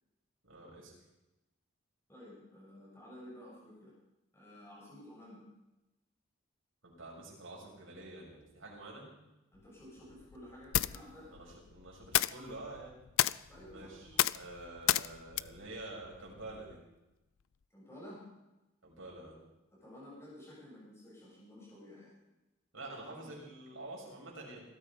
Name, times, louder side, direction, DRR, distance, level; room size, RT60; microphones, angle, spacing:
voice 1, 0.4-0.9 6.8-9.0 11.3-13.0 13.7-16.8 18.8-19.4 22.7-24.6, right 2 dB, 80° right, -3 dB, 6.8 m, -48 dB
voice 2, 2.1-3.9 4.3-5.4 9.5-11.3 13.5-14.2 17.7-18.2 19.8-22.1 23.2-23.4, left 1 dB, 15° left, -7 dB, 7.9 m, -52 dB
sound 1, 9.6-16.8, left 13 dB, 90° left, 0.4 m, -35 dB
20.5 x 13.0 x 5.3 m, 0.98 s
head